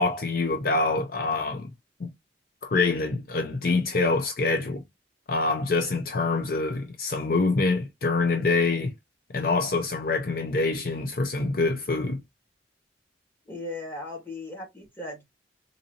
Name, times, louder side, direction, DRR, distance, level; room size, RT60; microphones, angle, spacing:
voice 1, 0.0-1.7 2.6-4.8 5.3-8.9 9.3-12.2, left 3 dB, 55° left, 0.6 m, -25 dB
voice 2, 13.5-15.2, left 2 dB, 10° left, 1.5 m, -37 dB
3.9 x 2.6 x 2.7 m
head